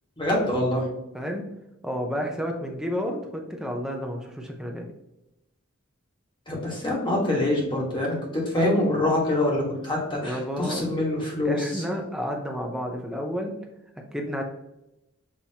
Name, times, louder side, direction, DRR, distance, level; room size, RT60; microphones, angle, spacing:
voice 1, 0.2-0.9 6.5-11.8, left 1 dB, 25° left, -3 dB, 1.3 m, -25 dB
voice 2, 1.1-1.4 1.8-4.9 10.2-10.8 11.4-13.5 14.1-14.4, equal, 5° right, 1 dB, 0.6 m, -31 dB
6.5 x 2.9 x 2.8 m, 0.89 s
head